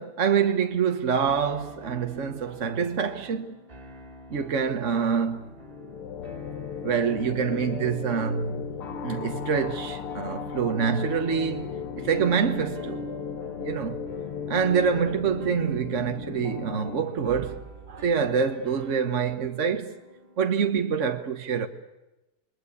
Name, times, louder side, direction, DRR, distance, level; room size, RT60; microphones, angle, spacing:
voice 1, 0.0-3.6 4.3-5.4 6.8-8.7 9.0-13.1 13.6-14.0 14.5-17.6 17.9-19.9 20.4-21.7, right 6 dB, 45° right, 1.2 m, -26 dB
sound 1, 1.3-20.5, right 1 dB, 25° right, 2.4 m, -49 dB
sound 2, 5.4-17.0, left 6 dB, 85° left, 2.1 m, -36 dB
28.5 x 22.0 x 8.5 m
omnidirectional pair, 2.3 m